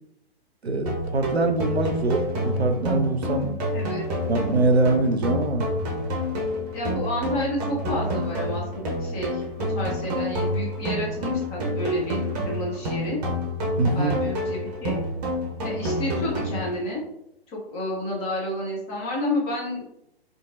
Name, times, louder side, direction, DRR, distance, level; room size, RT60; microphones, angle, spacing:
voice 1, 0.6-3.6 4.3-5.7 13.8-14.2, right 2 dB, 85° right, 6 dB, 0.5 m, -23 dB
sound 1, 0.9-16.9, equal, 40° right, 0.8 m, -28 dB
voice 2, 3.7-4.1 6.7-13.2 13.9-15.0 15.6-17.0 17.5-19.9, left 1 dB, 20° left, -4 dB, 0.6 m, -30 dB
2.9 x 2.5 x 2.5 m, 0.81 s
figure-of-eight pair, 120°, 31 cm